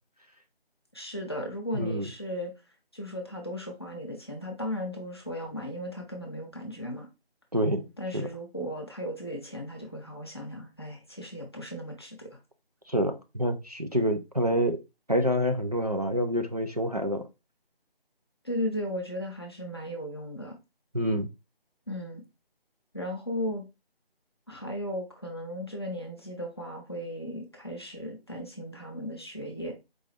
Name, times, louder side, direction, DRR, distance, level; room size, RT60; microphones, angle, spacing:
voice 1, 0.9-2.5 2.9-7.1 8.0-12.4 18.4-20.5 21.9-22.2 22.9-23.7 24.5-29.7, equal, 25° left, 0.7 m, -36 dB
voice 2, 1.7-2.1 7.5-7.9 8.1-8.3 12.9-14.8 15.1-17.3 20.9-21.3, equal, 40° right, 0.4 m, -27 dB
4.7 x 2.5 x 3.3 m
figure-of-eight pair, 170°, 30 cm